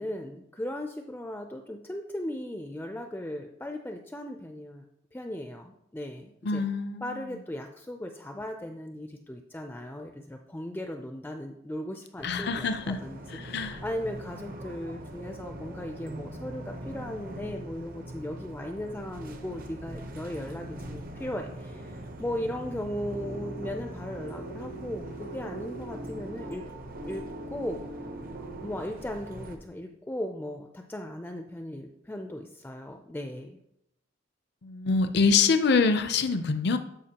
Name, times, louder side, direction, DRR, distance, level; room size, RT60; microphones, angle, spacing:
voice 1, 0.0-4.8 5.1-6.6 7.0-13.2 13.5-26.6 27.1-27.8 28.6-33.6, left 1 dB, 10° left, 4 dB, 0.4 m, -37 dB
voice 2, 6.4-7.0 12.2-13.0 13.3-13.8 34.6-36.8, left 4 dB, 60° left, 9 dB, 0.5 m, -25 dB
sound 1, 12.2-29.6, right 1 dB, 50° right, 0.8 m, -42 dB
sound 2, 23.1-29.1, right 2 dB, 80° right, 0.9 m, -42 dB
12.5 x 5.0 x 2.9 m, 0.81 s
head